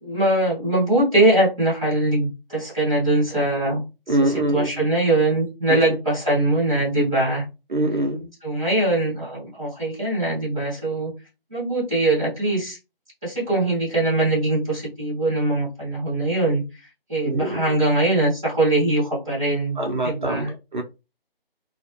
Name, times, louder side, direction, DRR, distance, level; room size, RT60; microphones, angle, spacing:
voice 1, 0.0-3.8 4.1-7.4 8.4-11.1 11.5-12.8 13.2-16.6 17.1-19.8 20.0-20.5, right 2 dB, 5° right, 0.7 m, -22 dB
voice 2, 4.1-4.7 5.7-5.8 7.7-8.3 17.2-17.8 19.8-20.8, right 1 dB, 55° right, 0.5 m, -24 dB
2.3 x 2.1 x 2.7 m
figure-of-eight pair, 160°, 30 cm